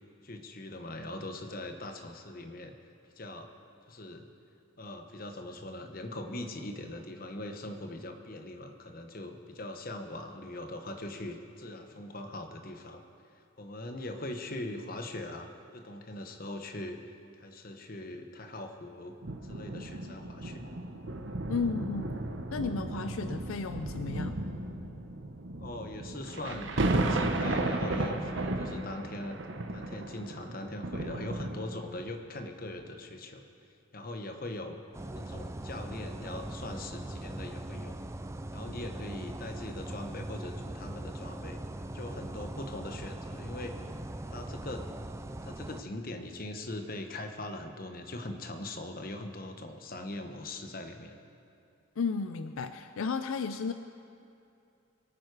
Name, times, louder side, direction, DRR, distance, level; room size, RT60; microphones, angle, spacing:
voice 1, 0.2-2.7 3.2-3.5 3.9-4.3 4.8-13.0 13.6-17.0 17.4-19.1 19.4-20.7 25.6-29.4 29.7-33.4 33.9-34.8 35.1-38.0 38.5-41.6 41.9-43.8 44.3-45.0 45.4-51.2, left 1 dB, 45° left, 6 dB, 1.1 m, -41 dB
sound 1, 19.2-32.0 32.7-32.8, right 2 dB, 60° right, 1.0 m, -34 dB
voice 2, 21.5-22.2 22.5-24.4 52.0-53.7, left 5 dB, 80° left, 10 dB, 0.4 m, -33 dB
sound 2, 34.9-45.8, right 1 dB, 15° right, 0.3 m, -40 dB
23.0 x 9.3 x 4.8 m, 2.6 s
head